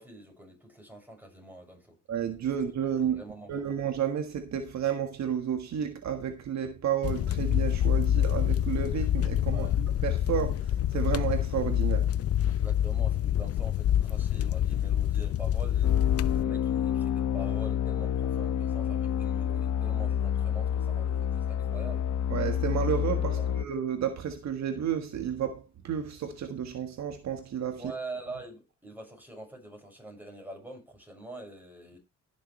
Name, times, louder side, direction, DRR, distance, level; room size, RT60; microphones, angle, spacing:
voice 1, 0.0-2.0 2.5-2.6 3.0-3.8 9.5-9.8 12.5-16.0 16.2-22.1 23.3-23.6 27.7-32.0, right 2 dB, 5° right, 6.5 m, -45 dB
voice 2, 2.1-3.2 3.5-12.1 22.3-27.9, right 8 dB, 65° right, 1.6 m, -31 dB
sound 1, 7.0-16.4, left 11 dB, 50° left, 0.5 m, -26 dB
sound 2, 15.8-23.6, left 9 dB, 70° left, 0.9 m, -29 dB
19.0 x 7.0 x 3.2 m
cardioid pair, 90°, 30 cm